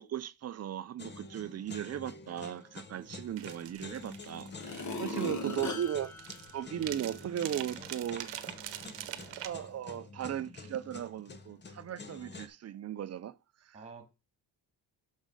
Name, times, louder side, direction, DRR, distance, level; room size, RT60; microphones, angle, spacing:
voice 1, 0.0-6.1 6.5-8.3 9.4-13.3 13.7-13.8, right 10 dB, 40° right, 0.4 m, -37 dB
sound 1, 1.0-12.5, left 4 dB, 25° left, 0.7 m, -49 dB
sound 2, 3.4-9.5, right 12 dB, 75° right, 1.0 m, -44 dB
sound 3, 3.8-3.9 4.4-7.3 7.8-7.9, left 3 dB, 40° left, 1.3 m, -40 dB
voice 2, 4.8-5.8 7.7-7.9 8.8-9.4 13.7-14.1, right 4 dB, 15° right, 2.0 m, -50 dB
6.2 x 5.6 x 5.2 m
cardioid pair, 160°, 43 cm